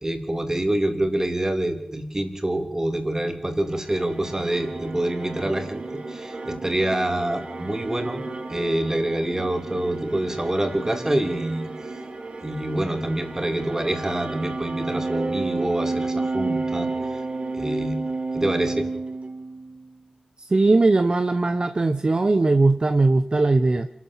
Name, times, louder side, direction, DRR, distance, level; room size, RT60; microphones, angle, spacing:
voice 1, 0.0-8.2 8.5-11.7 12.4-16.9 17.5-18.0 18.3-18.9, right 1 dB, 20° right, 5 dB, 3.5 m, -26 dB
sound 1, 3.6-19.9, right 3 dB, 60° right, 3.3 m, -31 dB
voice 2, 20.4-23.9, right 3 dB, 40° right, 9 dB, 1.0 m, -19 dB
28.0 x 12.5 x 7.5 m, 0.79 s
wide cardioid pair, 70°, 2 cm